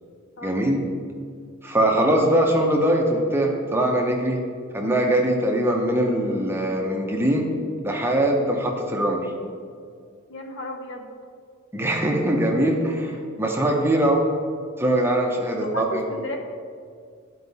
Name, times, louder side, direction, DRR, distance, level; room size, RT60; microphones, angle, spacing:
voice 1, 0.4-0.8 1.6-4.4 4.7-7.5 7.8-9.3 11.7-14.2 14.8-16.0, right 1 dB, 10° right, 0 dB, 0.7 m, -22 dB
voice 2, 10.3-11.1 15.5-16.4, left 1 dB, 60° left, 3 dB, 0.9 m, -34 dB
11.5 x 4.6 x 4.1 m, 2.2 s
head